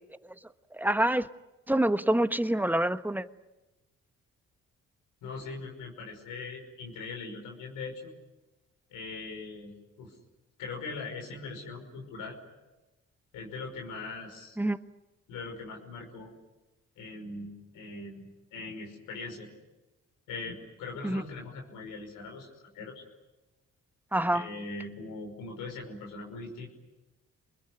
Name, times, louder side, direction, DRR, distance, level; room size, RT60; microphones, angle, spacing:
voice 1, 0.7-1.3 1.7-3.2 14.6-14.8 21.0-21.2 24.1-24.5, right 1 dB, 5° right, 1.3 m, -26 dB
voice 2, 5.2-8.1 8.9-10.1 10.6-12.4 13.3-14.6 15.3-16.3 17.0-19.5 20.3-22.5 22.7-23.0 24.3-26.7, left 3 dB, 85° left, 5.7 m, -41 dB
28.0 x 21.5 x 9.9 m
supercardioid pair, 55°, 31 cm